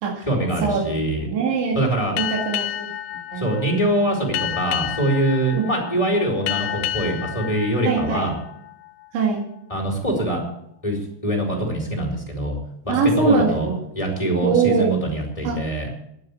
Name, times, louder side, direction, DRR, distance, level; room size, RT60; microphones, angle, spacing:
voice 1, 0.3-1.3 1.7-2.1 3.4-8.3 9.7-10.4 10.8-12.6 12.8-13.7 14.0-15.9, right 1 dB, 10° left, -1 dB, 3.7 m, -23 dB
voice 2, 1.2-1.8 2.2-2.9 3.3-3.5 5.5-5.7 7.9-8.3 9.1-9.5 12.9-13.8 14.4-14.9 15.4-15.6, right 5 dB, 85° right, 0 dB, 4.5 m, -22 dB
Boat Water vehicle, 2.2-9.2, left 12 dB, 85° left, 2.2 m, -31 dB
11.0 x 9.5 x 8.6 m, 0.75 s
omnidirectional pair, 5.1 m